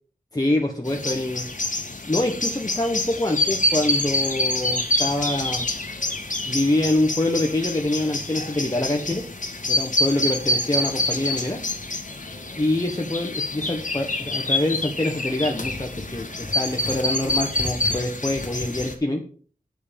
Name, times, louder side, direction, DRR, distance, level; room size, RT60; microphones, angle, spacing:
voice 1, 0.3-1.5 2.0-5.7 6.5-9.2 9.7-11.6 12.6-19.2, left 1 dB, 25° left, 1 dB, 1.4 m, -25 dB
sound 1, 0.9-18.9, left 2 dB, 55° left, 2.1 m, -27 dB
9.5 x 5.5 x 6.9 m, 0.42 s
wide cardioid pair, 65°, 15 cm